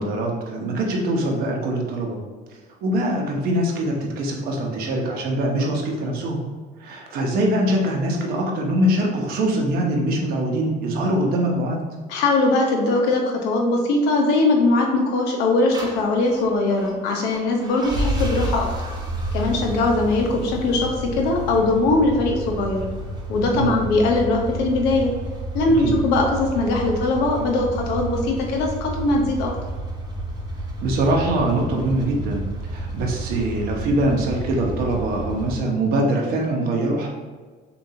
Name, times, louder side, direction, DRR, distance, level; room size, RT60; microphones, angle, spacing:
voice 1, 0.0-2.2 2.8-6.4 6.8-11.8 23.5-23.8 25.8-26.0 30.8-32.4 32.7-37.1, right 1 dB, 60° right, 0 dB, 1.0 m, -23 dB
voice 2, 12.1-18.7 19.3-22.8 23.3-25.1 25.5-29.5, left 2 dB, 80° left, 1 dB, 1.0 m, -21 dB
sound 1, 15.7-35.6, right 1 dB, 25° right, 0.8 m, -30 dB
6.8 x 2.6 x 2.8 m, 1.4 s
cardioid pair, 160°, 17 cm